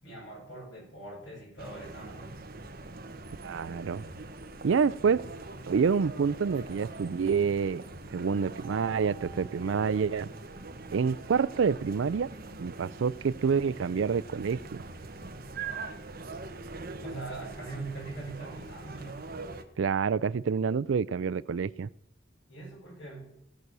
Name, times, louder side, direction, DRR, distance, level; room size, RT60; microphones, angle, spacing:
voice 1, 0.0-2.3 17.0-19.3 22.5-23.3, right 2 dB, 90° left, -5 dB, 6.3 m, -42 dB
sound 1, 1.6-19.6, right 3 dB, 50° right, 1.1 m, -43 dB
voice 2, 3.4-4.0 4.6-5.2 5.7-7.8 8.1-10.3 10.9-12.3 12.6-14.6 19.8-21.9, right 6 dB, 80° right, 19 dB, 0.4 m, -27 dB
sound 2, 8.6-12.6, right 7 dB, 25° right, 2.8 m, -54 dB
17.0 x 6.3 x 6.7 m, 0.77 s
head